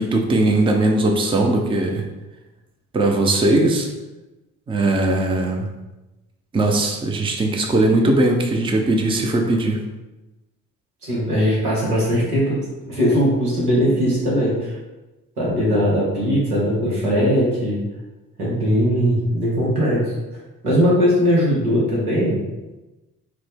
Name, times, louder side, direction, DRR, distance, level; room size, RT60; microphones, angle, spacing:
voice 1, 0.0-2.0 2.9-3.9 4.7-5.7 6.5-9.8, right 2 dB, 10° right, 2 dB, 0.5 m, -19 dB
voice 2, 11.0-12.6 12.9-14.7 15.4-17.8 18.4-20.1 20.6-22.4, equal, 85° right, -6 dB, 1.0 m, -19 dB
5.0 x 2.0 x 3.5 m, 1.1 s
figure-of-eight pair, 40°, 44 cm